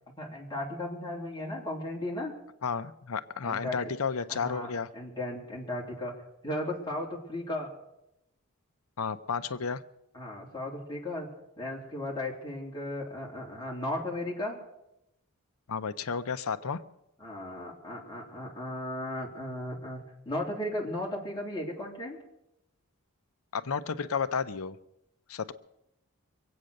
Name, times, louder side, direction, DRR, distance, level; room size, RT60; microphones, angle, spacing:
voice 1, 0.2-2.4 3.4-3.8 4.3-6.2 6.4-7.7 10.1-11.3 11.6-14.6 17.2-22.2, left 1 dB, 20° left, -3 dB, 3.3 m, -36 dB
voice 2, 2.6-4.9 9.0-9.8 15.7-16.8 23.5-24.8 25.3-25.5, left 6 dB, 70° left, 12 dB, 0.6 m, -32 dB
23.5 x 8.7 x 6.5 m, 0.85 s
head